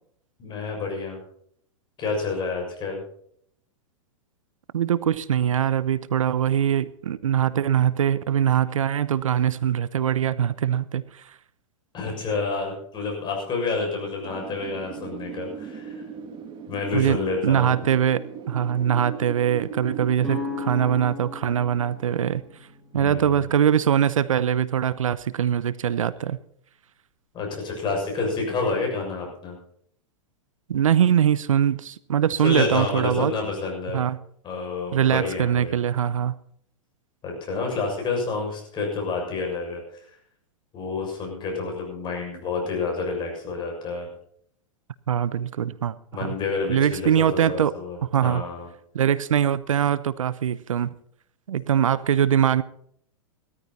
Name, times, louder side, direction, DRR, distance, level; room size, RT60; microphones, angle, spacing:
voice 1, 0.4-1.2 2.0-3.0 11.9-15.9 16.7-17.7 22.9-23.4 27.3-29.6 32.4-34.0 34.4-35.8 37.2-39.8 40.1-40.2 40.7-44.1 46.1-48.7, left 4 dB, 30° left, 1 dB, 6.7 m, -29 dB
voice 2, 4.7-11.2 16.9-17.2 17.4-22.4 22.9-26.4 30.7-33.3 33.9-34.2 34.9-36.3 45.1-45.9 46.2-46.3 46.7-47.7 48.1-48.4 48.9-50.9 51.5-52.6, right 9 dB, 85° right, 18 dB, 0.8 m, -22 dB
Wind, 14.2-22.9, right 7 dB, 30° right, 2.2 m, -39 dB
sound 1, 20.2-24.0, left 4 dB, ahead, 5.7 m, -37 dB
16.5 x 13.5 x 4.2 m, 0.65 s
hypercardioid pair, 125°, 17 cm